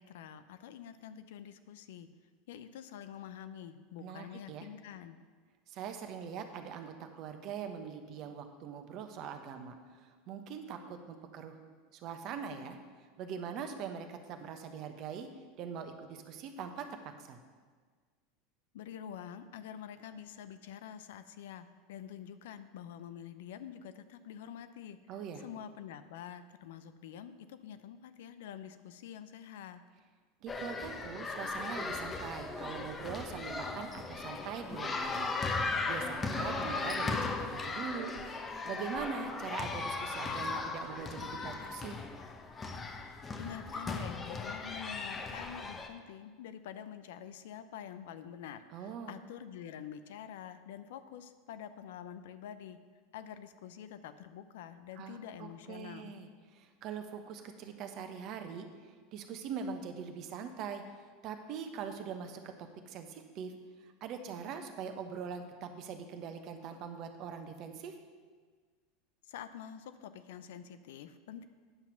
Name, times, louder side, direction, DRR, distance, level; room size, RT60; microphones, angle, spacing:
voice 1, 0.0-2.1 2.5-5.2 18.7-25.0 25.4-29.8 43.4-52.8 53.1-56.1 69.3-71.5, left 9 dB, 75° left, 11 dB, 0.5 m, -47 dB
voice 2, 4.0-4.7 5.7-11.6 11.9-12.8 13.2-15.3 15.6-16.9 17.2-17.4 25.1-25.4 30.4-35.3 35.6-38.1 38.6-42.0 48.7-49.1 55.0-58.7 59.1-60.8 61.2-63.5 64.0-67.9, right 7 dB, 50° right, 6 dB, 1.1 m, -42 dB
sound 1, 30.5-45.9, left 3 dB, 25° left, 0.9 m, -37 dB
9.6 x 5.9 x 5.8 m, 1.5 s
hypercardioid pair, 90°, 0 cm